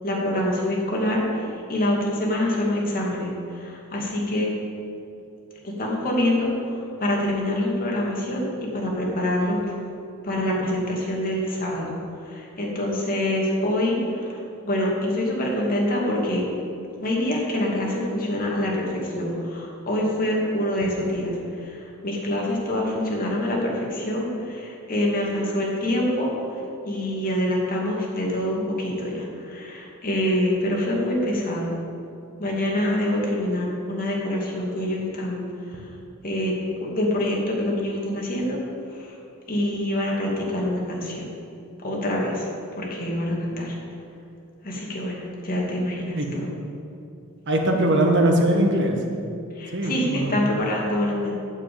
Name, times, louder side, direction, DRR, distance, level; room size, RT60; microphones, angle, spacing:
voice 1, 0.0-4.5 5.6-9.7 10.2-11.9 12.2-16.5 17.0-26.3 26.8-31.7 32.4-35.4 35.7-35.9 36.2-36.5 36.8-38.6 38.9-39.1 39.5-41.3 41.8-42.5 42.8-43.8 44.6-46.5 49.5-51.3, left 1 dB, 40° left, -2 dB, 2.6 m, -25 dB
voice 2, 47.5-49.0 49.7-50.4, right 1 dB, 55° right, 2 dB, 1.7 m, -21 dB
9.1 x 7.4 x 8.6 m, 2.7 s
head